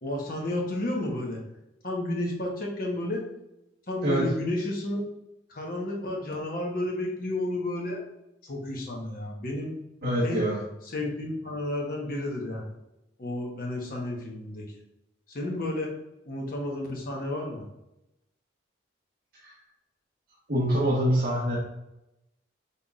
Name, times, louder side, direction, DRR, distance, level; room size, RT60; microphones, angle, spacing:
voice 1, 0.0-1.4 1.8-3.2 3.9-5.0 5.5-8.0 8.4-9.7 10.2-10.4 10.9-12.6 13.2-14.6 15.3-15.9 16.3-17.6, left 1 dB, 50° left, -1 dB, 1.0 m, -31 dB
voice 2, 10.0-10.6 19.4-19.5 20.5-21.6, equal, 50° right, -7 dB, 1.2 m, -25 dB
5.5 x 3.6 x 2.4 m, 0.88 s
head